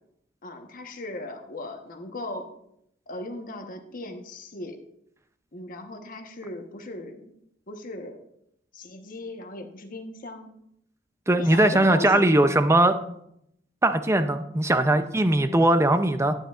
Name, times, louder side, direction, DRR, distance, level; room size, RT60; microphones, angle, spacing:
voice 1, 0.4-2.5 3.1-4.8 5.5-7.3 7.7-8.2 8.7-10.5 11.4-12.3, left 2 dB, 50° left, 4 dB, 1.2 m, -37 dB
voice 2, 11.3-13.0 13.8-16.4, right 1 dB, 15° right, 9 dB, 0.6 m, -20 dB
12.0 x 9.1 x 2.5 m, 0.75 s
head